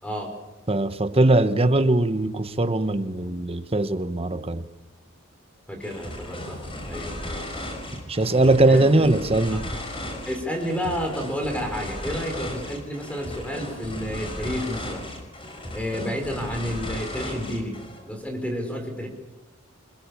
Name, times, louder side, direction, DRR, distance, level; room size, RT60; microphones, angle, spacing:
voice 1, 0.0-0.3 5.7-7.5 8.7-9.1 10.3-15.1 15.7-17.8 18.0-19.1, equal, 5° left, 5.4 m, -30 dB
voice 2, 0.7-4.7 8.1-9.7, right 2 dB, 30° right, 1.2 m, -21 dB
sound 1, 5.8-18.0, left 1 dB, 25° left, 5.3 m, -35 dB
28.0 x 21.0 x 7.3 m
head